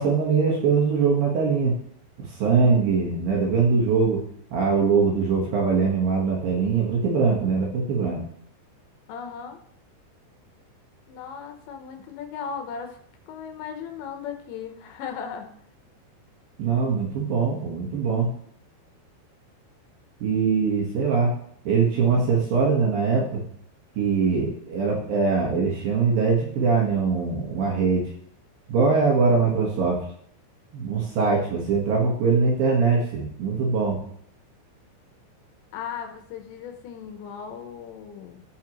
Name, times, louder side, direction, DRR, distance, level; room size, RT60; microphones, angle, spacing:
voice 1, 0.0-1.8 2.2-4.2 4.5-8.2 16.6-18.3 20.2-21.3 21.7-23.4 24.0-28.1 28.7-30.0 30.7-34.0, right 5 dB, 65° right, -3 dB, 2.5 m, -22 dB
voice 2, 9.1-9.6 11.1-13.0 13.3-15.5 35.7-38.4, left 7 dB, 75° left, 5 dB, 3.1 m, -37 dB
16.0 x 6.1 x 3.0 m, 0.65 s
omnidirectional pair, 5.5 m